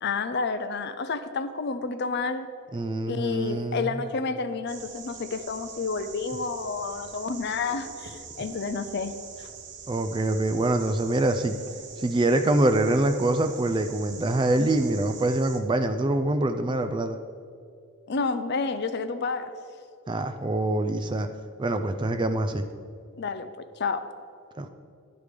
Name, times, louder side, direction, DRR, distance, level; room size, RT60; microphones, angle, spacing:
voice 1, 0.0-2.5 3.1-9.5 18.1-19.6 23.2-24.1, left 4 dB, 50° left, 10 dB, 0.5 m, -30 dB
voice 2, 2.7-4.0 9.9-11.6 12.0-17.2 20.1-21.3 21.6-22.7 24.6-24.7, right 2 dB, 20° right, 8 dB, 0.3 m, -25 dB
sound 1, 4.7-15.6, right 6 dB, 50° right, 0.8 m, -44 dB
11.5 x 4.9 x 5.1 m, 2.4 s
head